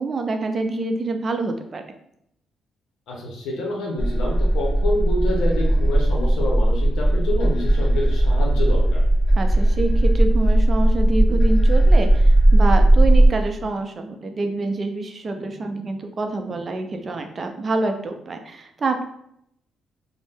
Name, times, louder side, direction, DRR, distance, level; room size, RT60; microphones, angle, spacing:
voice 1, 0.0-1.8 9.4-19.0, right 3 dB, 40° right, 6 dB, 0.4 m, -26 dB
voice 2, 3.1-9.0, left 1 dB, 80° left, -2 dB, 0.7 m, -28 dB
sound 1, 4.0-13.3, right 1 dB, 40° left, 1.3 m, -17 dB
2.6 x 2.0 x 3.4 m, 0.73 s
cardioid pair, 90°, 0 cm